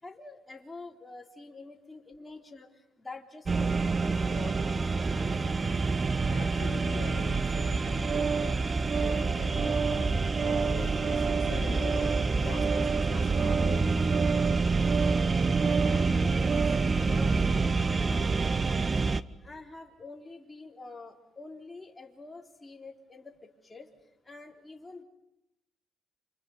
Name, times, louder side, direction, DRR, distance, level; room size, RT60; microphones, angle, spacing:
voice 1, 0.0-4.9 15.5-18.9 19.4-23.9 24.2-25.0, left 3 dB, 15° left, 3.9 m, -47 dB
sound 1, 3.5-19.2, right 4 dB, 30° right, 0.9 m, -27 dB
voice 2, 6.3-8.7 8.9-13.9 19.3-19.4, left 8 dB, 65° left, 1.7 m, -43 dB
Organ, 7.5-16.9, right 6 dB, 60° right, 0.9 m, -33 dB
29.5 x 27.0 x 5.5 m
cardioid pair, 90°, 0 cm